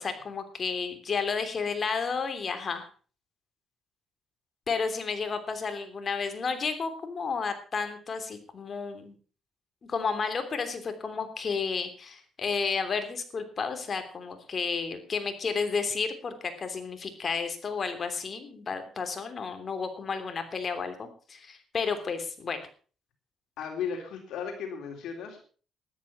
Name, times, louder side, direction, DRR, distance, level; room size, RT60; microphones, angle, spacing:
voice 1, 0.0-2.9 4.7-9.1 9.9-22.6, left 5 dB, 45° left, 8 dB, 3.2 m, -32 dB
voice 2, 23.6-25.4, left 7 dB, 80° left, 3 dB, 3.6 m, -35 dB
13.5 x 11.5 x 5.9 m, 0.40 s
cardioid pair, 90°, 0 cm